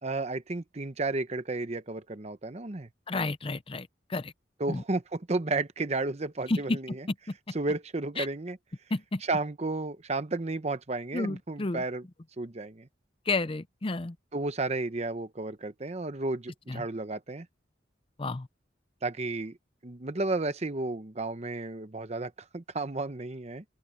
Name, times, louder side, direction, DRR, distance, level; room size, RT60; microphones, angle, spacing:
voice 1, 0.0-2.9 4.6-7.1 7.5-8.6 9.2-12.1 12.4-12.9 14.3-17.5 19.0-19.6 19.8-23.6, right 2 dB, 35° right, 0.9 m, -32 dB
voice 2, 3.1-4.3 4.7-4.8 6.5-6.8 8.2-8.3 8.9-9.2 11.1-11.8 13.3-14.1 16.7-16.8 18.2-18.5, left 3 dB, 30° left, 0.6 m, -31 dB
open air
head